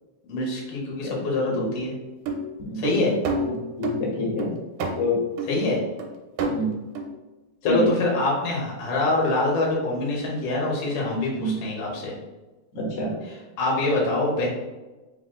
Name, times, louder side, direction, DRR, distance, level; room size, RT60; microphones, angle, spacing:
voice 1, 0.3-1.9 2.8-3.2 5.5-5.8 7.6-12.1 13.2-14.5, left 2 dB, 90° left, -3 dB, 2.6 m, -25 dB
sound 1, 2.1-4.0 4.4-5.0 5.4-5.6 6.0-6.1 6.4-6.6 7.0-7.1, right 2 dB, 85° right, 2.1 m, -28 dB
voice 2, 3.8-4.5 5.0-5.1 6.5-6.8 7.6-7.8 11.3-11.5 12.7-13.1, left 2 dB, 70° left, -3 dB, 2.3 m, -26 dB
5.5 x 3.6 x 2.2 m, 1.1 s
omnidirectional pair, 3.5 m